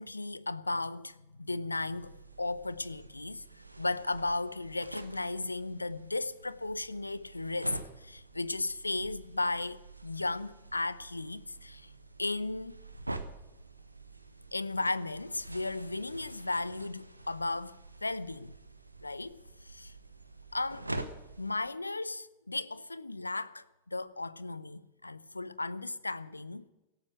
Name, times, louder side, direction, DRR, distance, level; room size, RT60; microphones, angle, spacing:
voice 1, 0.0-3.4 3.8-11.9 12.2-12.8 14.5-18.5 19.0-19.9 20.5-20.9 21.4-26.7, left 2 dB, 80° left, 0.6 m, -35 dB
sound 1, 1.8-21.6, right 2 dB, 85° right, 1.0 m, -46 dB
13.5 x 12.0 x 7.8 m
figure-of-eight pair, 90°, 0 cm